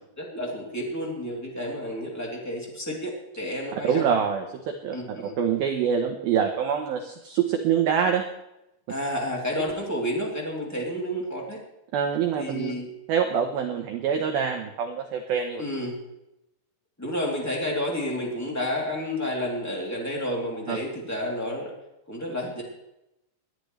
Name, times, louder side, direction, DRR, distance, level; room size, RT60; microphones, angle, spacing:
voice 1, 0.1-4.1 4.9-5.3 8.9-11.6 12.4-12.9 15.6-16.0 17.0-21.7 22.1-22.6, equal, 5° left, -2 dB, 1.6 m, -30 dB
voice 2, 3.8-8.2 11.9-12.7 13.1-15.6 20.7-20.8, right 7 dB, 85° right, 4 dB, 2.1 m, -25 dB
20.0 x 12.0 x 3.2 m, 0.87 s
omnidirectional pair, 5.7 m